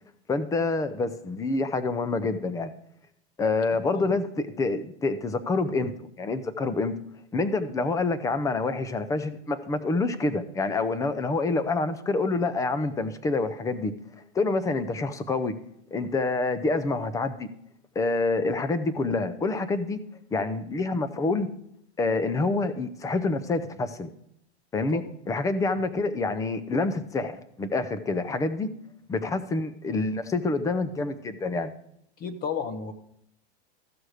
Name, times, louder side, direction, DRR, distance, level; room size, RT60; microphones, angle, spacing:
voice 1, 0.3-2.7 3.4-6.9 7.3-13.9 14.2-15.5 15.9-17.5 18.0-20.0 20.3-21.5 22.0-24.1 24.7-28.7 29.1-31.7, left 3 dB, 10° left, 12 dB, 0.5 m, -27 dB
voice 2, 32.2-32.9, left 6 dB, 25° left, 10 dB, 0.8 m, -32 dB
14.0 x 6.3 x 4.8 m, 0.73 s
supercardioid pair, 130°, 33 cm